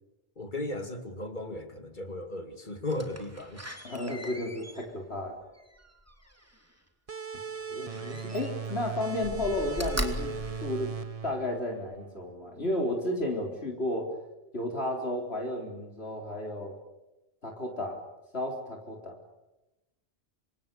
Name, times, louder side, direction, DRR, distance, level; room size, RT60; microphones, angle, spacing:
voice 1, 0.4-3.6, left 1 dB, 45° left, 7 dB, 2.6 m, -36 dB
Slam, 2.9-6.7 7.9-8.8 9.2-11.4 11.9-12.0, equal, 15° right, 3.1 m, -40 dB
voice 2, 3.8-5.4 7.7-11.0 11.2-14.1 14.5-16.8 17.4-18.0 18.3-19.2, left 1 dB, 65° left, 1 dB, 4.1 m, -33 dB
sound 1, 7.1-12.4, right 6 dB, 35° right, 1.1 m, -38 dB
27.5 x 25.5 x 7.0 m, 0.99 s
omnidirectional pair, 1.1 m